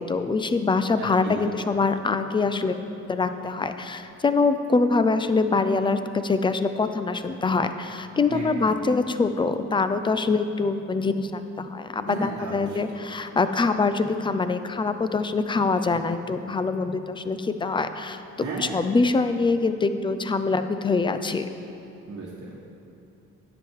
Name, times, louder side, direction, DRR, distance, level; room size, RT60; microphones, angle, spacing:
voice 1, 0.0-2.8 3.1-18.2 18.6-21.5, left 4 dB, 15° left, 10 dB, 0.4 m, -24 dB
voice 2, 1.0-1.4 8.3-8.7 12.1-12.8 18.4-18.8 22.1-22.5, right 3 dB, 50° right, -6 dB, 1.3 m, -34 dB
10.0 x 7.1 x 4.6 m, 2.8 s
cardioid pair, 90°, 30 cm